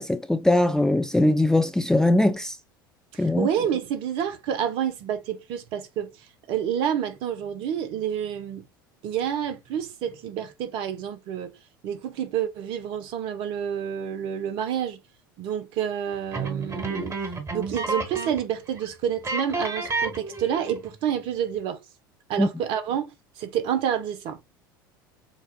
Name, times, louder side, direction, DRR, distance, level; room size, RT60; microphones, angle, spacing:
voice 1, 0.0-2.5 3.2-3.5 22.4-22.5, left 1 dB, 5° left, 0.5 m, -21 dB
voice 2, 3.1-6.1 6.5-8.7 9.0-11.5 11.8-15.0 15.4-17.2 17.5-21.8 22.3-24.4, right 9 dB, 50° right, 0.9 m, -28 dB
sound 1, 16.3-18.5 18.8-18.9 19.2-20.9, right 3 dB, 25° right, 1.7 m, -30 dB
7.0 x 2.5 x 2.3 m
figure-of-eight pair, 75°, 12 cm